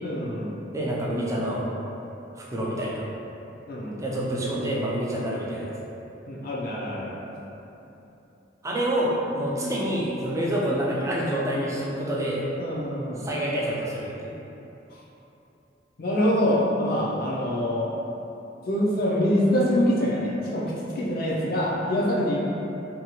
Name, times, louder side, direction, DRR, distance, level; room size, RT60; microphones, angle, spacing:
voice 1, 0.0-0.5 3.7-4.0 6.3-7.1 12.6-13.2 16.0-17.9 18.6-22.4, equal, 55° left, -5 dB, 0.5 m, -25 dB
voice 2, 0.7-1.6 2.4-3.0 4.0-5.7 8.6-12.5 13.2-14.4, right 1 dB, 15° right, -5 dB, 0.4 m, -27 dB
2.7 x 2.3 x 2.8 m, 3.0 s
head